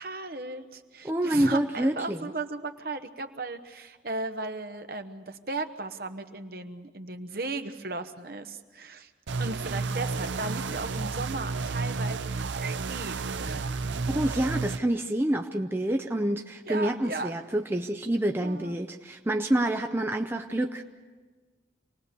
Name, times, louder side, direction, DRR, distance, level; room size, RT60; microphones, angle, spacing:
voice 1, 0.0-9.1 9.4-13.2 13.4-13.9 16.6-17.3 18.4-18.8, right 3 dB, 50° right, 7 dB, 1.2 m, -36 dB
voice 2, 1.0-2.2 14.1-20.8, right 1 dB, 10° right, 4 dB, 0.6 m, -27 dB
sound 1, 9.3-14.8, right 4 dB, 75° right, 0.6 m, -31 dB
27.0 x 19.0 x 6.8 m, 1.4 s
head